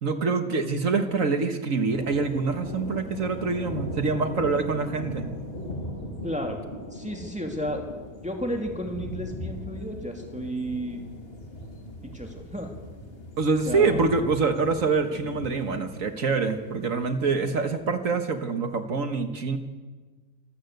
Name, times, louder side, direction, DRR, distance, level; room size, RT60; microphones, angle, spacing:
voice 1, 0.0-5.3 13.4-19.6, right 4 dB, 55° right, 7 dB, 1.7 m, -25 dB
sound 1, 1.9-18.0, left 1 dB, 35° left, 3.2 m, -39 dB
voice 2, 6.2-6.6 6.9-7.9 8.2-11.0 12.0-12.7 13.6-14.0, equal, 5° right, 2 dB, 2.5 m, -32 dB
25.5 x 14.0 x 8.0 m, 1.3 s
omnidirectional pair, 1.8 m